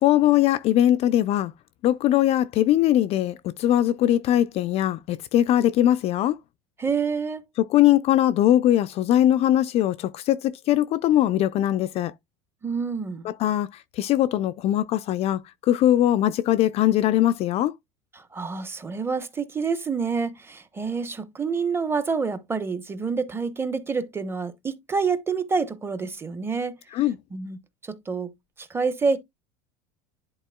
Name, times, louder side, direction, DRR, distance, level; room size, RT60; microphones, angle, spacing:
voice 1, 0.0-1.5 1.8-6.4 7.6-12.1 13.2-17.7 26.9-27.2, left 12 dB, 40° left, 0.4 m, -21 dB
voice 2, 6.8-7.5 12.6-13.2 18.1-26.8 27.3-27.6 27.8-28.3 28.6-29.2, right 5 dB, 15° right, 0.9 m, -27 dB
11.0 x 4.1 x 2.2 m
supercardioid pair, 130°, 16 cm